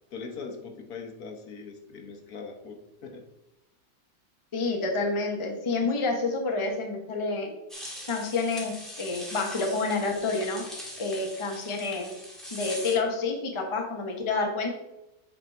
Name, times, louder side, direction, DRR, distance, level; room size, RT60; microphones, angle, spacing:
voice 1, 0.1-3.2, left 4 dB, 65° left, 3 dB, 1.5 m, -41 dB
voice 2, 4.5-7.5 8.1-10.6 11.0-12.1 12.5-14.7, left 3 dB, 20° left, 2 dB, 0.9 m, -28 dB
sound 1, 7.7-12.9, equal, ahead, 1.7 m, -41 dB
8.0 x 4.9 x 4.2 m, 0.92 s
omnidirectional pair, 1.8 m